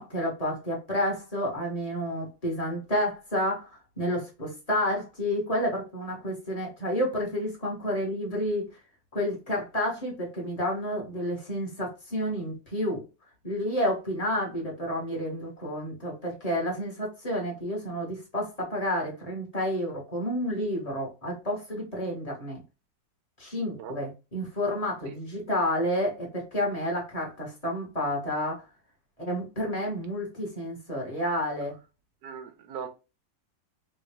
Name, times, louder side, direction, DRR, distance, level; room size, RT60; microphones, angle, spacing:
voice 1, 0.0-8.7 9.1-13.0 13.4-22.6 23.4-28.6 29.2-31.7, equal, 25° left, -2 dB, 0.9 m, -30 dB
voice 2, 32.2-32.9, right 7 dB, 65° right, 6 dB, 1.0 m, -39 dB
3.6 x 2.3 x 3.3 m, 0.28 s
omnidirectional pair, 2.1 m